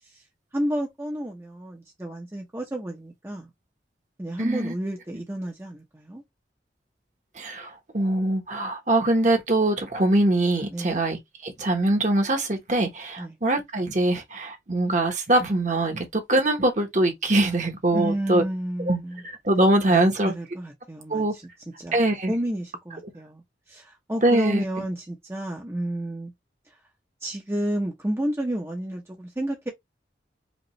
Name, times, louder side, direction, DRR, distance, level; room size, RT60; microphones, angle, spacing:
voice 1, 0.5-3.5 4.2-6.2 10.7-11.0 13.2-13.4 17.9-19.2 19.9-21.5 21.8-22.0 22.3-23.4 23.7-26.3 27.2-29.7, right 1 dB, 15° right, 0.7 m, -31 dB
voice 2, 4.4-4.7 7.4-18.4 18.9-19.0 19.2-20.3 21.1-21.3 21.9-22.3 24.2-24.6, right 2 dB, 45° right, 1.1 m, -23 dB
5.1 x 2.4 x 3.1 m
head